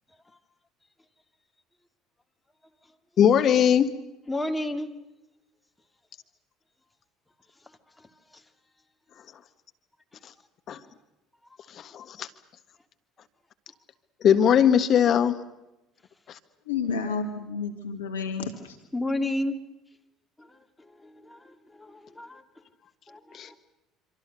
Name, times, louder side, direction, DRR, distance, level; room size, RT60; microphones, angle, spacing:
voice 1, 3.2-3.9 10.7-10.8 11.7-12.3 14.2-15.3 16.3-16.4 23.3-23.6, left 8 dB, 45° left, 1.4 m, -20 dB
voice 2, 4.3-4.9 7.6-8.4 18.9-19.6 20.4-22.4 23.1-23.6, left 1 dB, 10° left, 2.4 m, -33 dB
voice 3, 16.7-18.8, left 5 dB, 80° left, 1.8 m, -31 dB
26.0 x 26.0 x 6.7 m
figure-of-eight pair, 60°, 0 cm